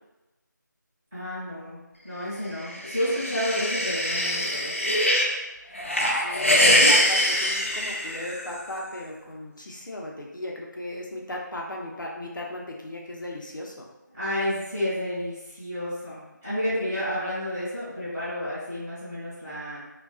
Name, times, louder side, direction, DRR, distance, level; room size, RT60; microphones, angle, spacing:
voice 1, 1.1-4.8 14.1-19.8, left 1 dB, 5° right, -20 dB, 0.8 m, -30 dB
sound 1, 2.7-5.3 5.7-8.6, left 1 dB, 40° left, 0.3 m, -23 dB
voice 2, 5.9-13.9, left 1 dB, 75° left, -1 dB, 0.6 m, -36 dB
2.4 x 2.3 x 2.3 m, 1.0 s
figure-of-eight pair, 175°, 10 cm